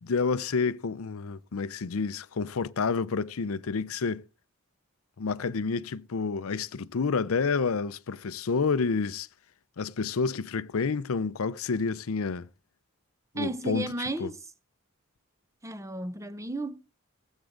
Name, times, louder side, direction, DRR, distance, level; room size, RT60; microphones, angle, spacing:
voice 1, 0.0-4.2 5.2-9.3 9.8-12.5 13.4-13.9 14.2-14.3, left 5 dB, 75° left, 0.6 m, -29 dB
voice 2, 13.3-14.4 15.6-16.8, right 2 dB, 15° right, 0.7 m, -34 dB
17.5 x 8.3 x 3.8 m
head